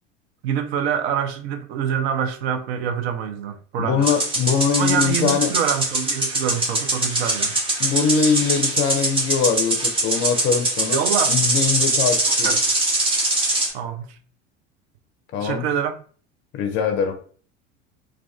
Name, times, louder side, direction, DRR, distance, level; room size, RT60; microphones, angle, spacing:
voice 1, 0.4-4.1 4.8-7.6 10.9-11.5 12.4-12.6 13.7-14.2 15.4-15.9, right 8 dB, 55° right, 0.5 m, -25 dB
voice 2, 3.8-5.5 7.8-12.5 15.3-15.6 16.5-17.1, left 6 dB, 35° left, 0.5 m, -22 dB
sound 1, 4.0-13.7, right 2 dB, 15° right, 0.7 m, -22 dB
2.3 x 2.3 x 2.3 m
figure-of-eight pair, 70°, 37 cm